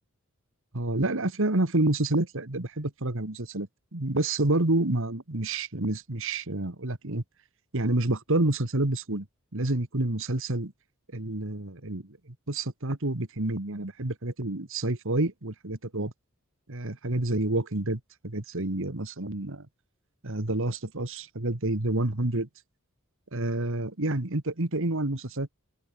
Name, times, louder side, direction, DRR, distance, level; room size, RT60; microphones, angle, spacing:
voice 1, 0.7-3.7 3.9-7.2 7.7-9.3 9.5-10.7 11.1-12.0 12.5-16.1 16.7-19.7 20.2-22.5 23.3-25.5, right 2 dB, 65° right, 2.1 m, -28 dB
open air
head